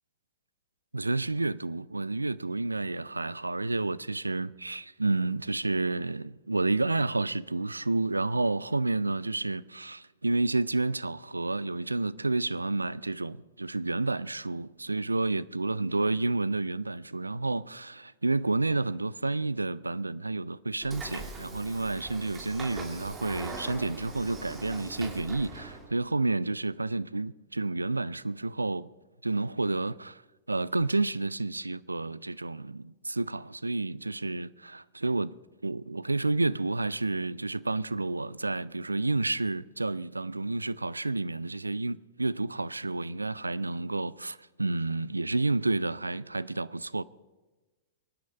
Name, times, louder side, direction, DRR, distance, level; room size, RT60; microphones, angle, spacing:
voice 1, 0.9-28.9 29.2-30.2 30.5-35.3 35.6-47.0, right 2 dB, 85° right, 0.4 m, -30 dB
Train / Sliding door, 20.8-25.9, right 3 dB, 20° right, 2.7 m, -41 dB
23.5 x 9.6 x 5.3 m
figure-of-eight pair, 100°, 0 cm